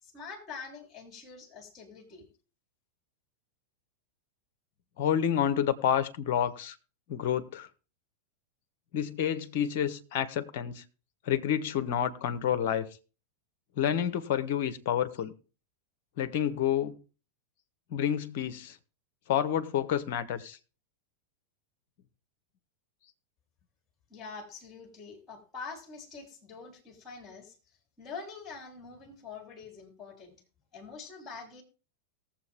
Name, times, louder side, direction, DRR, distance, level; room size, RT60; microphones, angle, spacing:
voice 1, 0.0-2.3 24.1-27.6 28.0-30.4 30.7-31.6, left 5 dB, 20° left, 3.5 m, -45 dB
voice 2, 5.0-6.7 7.1-7.7 8.9-10.8 11.2-12.9 13.8-15.3 16.2-16.9 17.9-18.8 19.3-20.6, left 9 dB, 50° left, 1.0 m, -29 dB
18.5 x 7.4 x 3.5 m
figure-of-eight pair, 90°, 0 cm